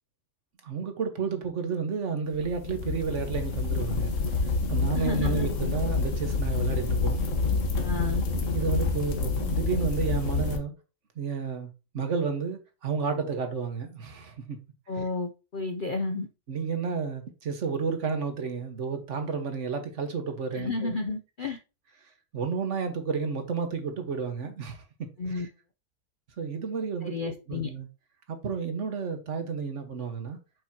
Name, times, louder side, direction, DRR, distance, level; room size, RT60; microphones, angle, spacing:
voice 1, 0.6-4.1 4.4-7.2 8.5-10.7 11.2-11.7 11.9-14.6 16.5-20.9 22.3-25.4 26.4-27.9 28.3-30.4, right 5 dB, 50° right, 1.5 m, -31 dB
sound 1, 2.3-10.6, left 3 dB, 55° left, 1.4 m, -28 dB
voice 2, 4.9-5.5 7.8-8.2 14.9-16.3 20.5-21.6 25.2-25.5 27.0-27.7, left 3 dB, 85° left, 0.4 m, -31 dB
7.7 x 5.6 x 2.8 m
omnidirectional pair, 1.7 m